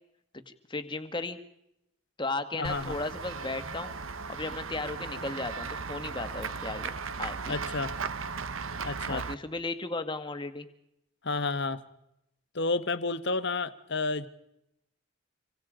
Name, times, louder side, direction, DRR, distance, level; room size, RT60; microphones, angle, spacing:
voice 1, 0.3-1.4 2.2-4.0 4.3-6.9 7.2-7.6 9.1-10.7, left 3 dB, 20° left, 9 dB, 1.7 m, -35 dB
voice 2, 2.6-2.9 7.5-8.0 8.8-9.2 11.2-11.8 12.5-14.3, left 3 dB, 55° left, 13 dB, 1.3 m, -30 dB
Run / Walk footsteps / Bell, 2.6-9.4, right 5 dB, 70° right, 1.2 m, -36 dB
27.0 x 24.5 x 5.1 m, 0.82 s
head